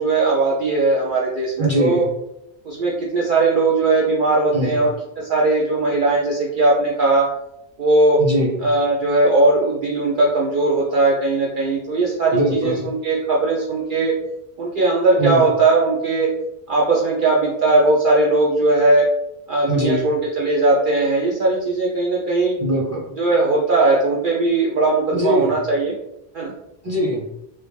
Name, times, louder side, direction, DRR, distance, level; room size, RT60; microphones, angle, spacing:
voice 1, 0.0-2.0 2.6-7.3 7.8-8.2 8.6-14.1 14.6-16.3 16.7-19.1 19.5-22.6 23.2-25.9 26.3-26.5, right 2 dB, 55° right, -4 dB, 0.7 m, -19 dB
voice 2, 1.6-2.1 4.5-4.8 8.2-8.6 12.3-12.9 15.2-15.4 19.7-20.1 22.6-23.1 25.1-25.6 26.8-27.2, equal, 15° right, -3 dB, 0.8 m, -21 dB
3.2 x 2.6 x 3.4 m, 0.83 s
omnidirectional pair, 1.1 m